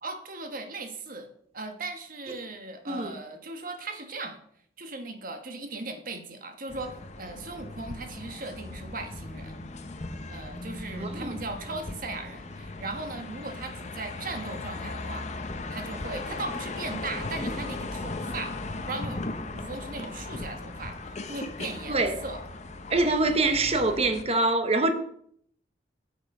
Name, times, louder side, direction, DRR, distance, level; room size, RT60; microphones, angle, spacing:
voice 1, 0.0-4.4 4.8-9.7 10.3-19.2 19.5-22.4, right 3 dB, 50° right, 1.3 m, -38 dB
sound 1, 6.7-24.2, left 2 dB, 40° left, 0.8 m, -37 dB
voice 2, 11.0-11.3 21.9-22.1 22.9-24.9, right 2 dB, 35° right, 1.0 m, -24 dB
7.8 x 7.2 x 5.3 m
head